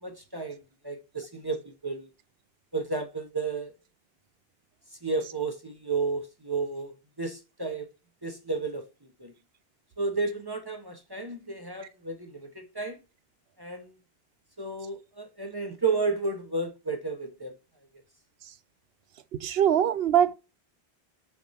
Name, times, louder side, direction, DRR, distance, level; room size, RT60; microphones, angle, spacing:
voice 1, 0.0-2.1 2.7-3.7 5.0-7.9 8.2-8.9 9.2-9.3 10.0-13.0 13.6-13.9 14.6-17.5, right 3 dB, 25° right, 1.1 m, -32 dB
voice 2, 19.4-20.3, right 10 dB, 75° right, 0.9 m, -22 dB
6.8 x 3.7 x 4.2 m
omnidirectional pair, 1.0 m